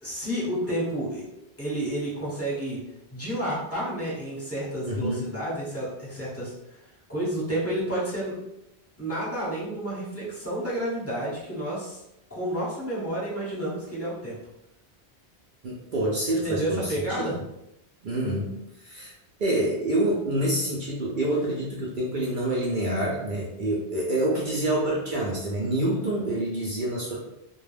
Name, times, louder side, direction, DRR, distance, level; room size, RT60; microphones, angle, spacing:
voice 1, 0.0-1.2 1.6-2.8 3.1-6.5 7.1-8.4 9.0-12.0 12.3-14.4 16.4-17.4, right 1 dB, 15° left, -7 dB, 0.9 m, -30 dB
voice 2, 4.9-5.2 15.6-17.3 18.0-18.5 18.8-19.1 19.4-27.2, right 1 dB, 60° right, -4 dB, 0.6 m, -27 dB
2.2 x 2.2 x 3.2 m, 0.86 s
omnidirectional pair, 1.1 m